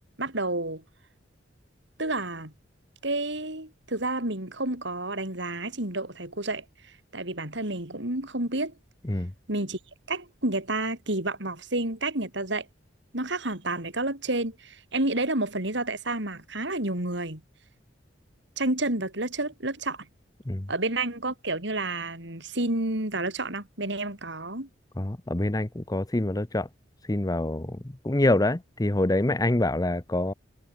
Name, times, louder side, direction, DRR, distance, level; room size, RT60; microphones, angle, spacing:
voice 1, 0.2-0.8 2.0-2.5 3.0-6.6 7.1-8.7 9.5-9.8 10.1-12.7 13.1-17.4 18.6-20.1 20.7-24.7, right 2 dB, 65° right, 5.4 m, -30 dB
voice 2, 25.0-26.7 27.1-30.3, left 1 dB, 20° left, 0.8 m, -26 dB
head